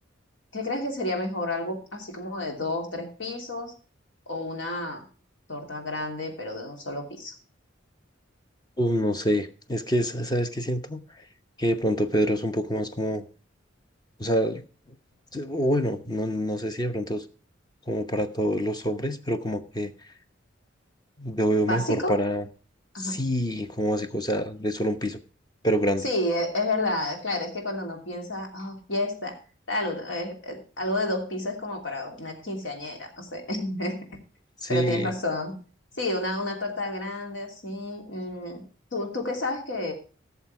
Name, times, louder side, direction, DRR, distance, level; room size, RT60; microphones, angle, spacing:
voice 1, 0.5-3.7 4.3-5.1 5.5-7.3 21.7-22.1 22.9-23.2 26.0-29.4 29.7-34.2 34.7-35.5 36.0-38.6 38.9-39.9, left 1 dB, 80° left, 2 dB, 3.0 m, -30 dB
voice 2, 8.8-11.0 11.6-13.2 14.2-14.6 14.9-15.0 15.3-17.2 17.9-19.9 21.2-22.4 23.0-25.2 25.6-26.0 34.6-35.1, equal, 20° left, 8 dB, 0.9 m, -26 dB
16.0 x 7.0 x 4.8 m, 0.37 s
head